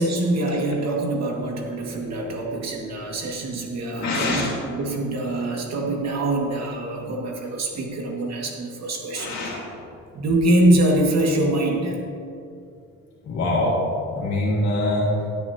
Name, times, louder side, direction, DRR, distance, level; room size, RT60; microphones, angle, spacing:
voice 1, 0.0-9.4 10.1-12.0, right 1 dB, 60° right, 0 dB, 2.0 m, -24 dB
voice 2, 4.0-4.5 9.1-9.6 13.2-13.8 14.1-15.1, left 2 dB, 65° left, -5 dB, 2.3 m, -24 dB
16.5 x 8.7 x 2.9 m, 2.5 s
cardioid pair, 95°, 30 cm